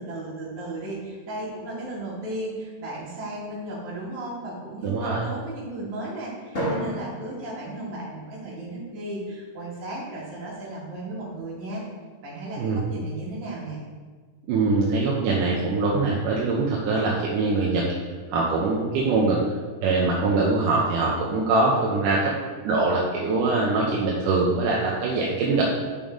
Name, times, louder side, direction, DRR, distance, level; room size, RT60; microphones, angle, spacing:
voice 1, 0.0-11.8 12.2-13.8, right 1 dB, 65° right, -6 dB, 3.4 m, -35 dB
voice 2, 4.8-5.2 12.6-12.8 14.5-17.8 18.3-19.4 19.8-22.3 22.6-25.6, right 3 dB, 85° right, -4 dB, 2.4 m, -23 dB
Drum, 6.5-8.8, equal, 30° left, 1.6 m, -33 dB
8.6 x 5.3 x 3.8 m, 1.4 s
omnidirectional pair, 3.7 m